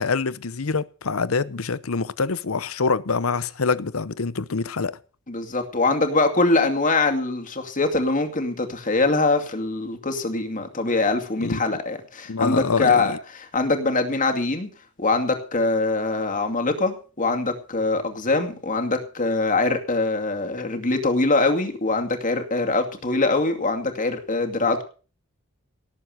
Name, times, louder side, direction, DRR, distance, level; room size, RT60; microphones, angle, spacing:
voice 1, 0.0-4.9 11.4-11.8 12.3-13.2, left 4 dB, 80° left, 0.8 m, -25 dB
voice 2, 5.3-14.7 15.0-24.8, left 3 dB, 40° left, 2.4 m, -23 dB
18.5 x 7.6 x 6.7 m
head